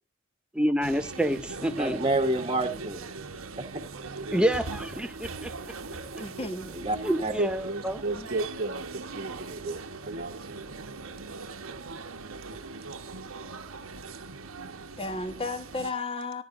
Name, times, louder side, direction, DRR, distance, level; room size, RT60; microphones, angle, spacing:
voice 1, 0.5-2.0 4.3-5.5 6.1-6.2 7.0-8.0 9.6-9.8, right 1 dB, 5° right, 0.6 m, -28 dB
sound 1, 0.8-15.9, right 3 dB, 90° right, 1.3 m, -40 dB
voice 2, 1.8-3.0 3.6-3.8 6.7-7.3, right 2 dB, 25° right, 1.4 m, -28 dB
voice 3, 3.9-4.3 7.4-10.6 14.6-14.9, right 2 dB, 45° right, 1.2 m, -35 dB
voice 4, 6.2-6.7 15.0-16.4, left 3 dB, 25° left, 1.4 m, -33 dB
15.5 x 11.0 x 2.6 m
head